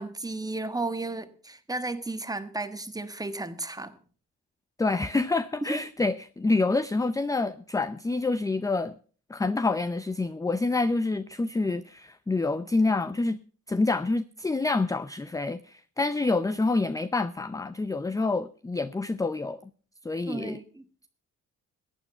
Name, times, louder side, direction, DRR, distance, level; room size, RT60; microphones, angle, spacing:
voice 1, 0.0-3.9 5.7-5.8 20.3-20.8, right 2 dB, 10° right, 1.4 m, -34 dB
voice 2, 4.8-9.0 9.3-13.4 13.7-19.6 20.0-20.6, left 3 dB, 10° left, 0.5 m, -27 dB
15.0 x 9.0 x 5.6 m
cardioid pair, 90°, 30 cm